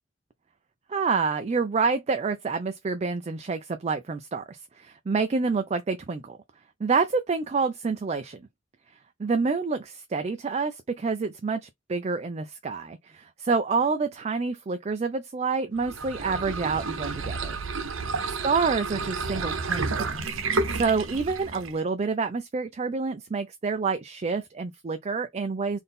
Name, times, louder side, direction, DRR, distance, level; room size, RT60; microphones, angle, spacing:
voice 1, 0.9-6.4 6.8-8.4 9.2-17.6 18.4-25.8, right 4 dB, 35° right, 0.4 m, -28 dB
sound 1, 15.7-21.8, right 4 dB, 85° right, 0.8 m, -30 dB
3.9 x 2.6 x 3.5 m
head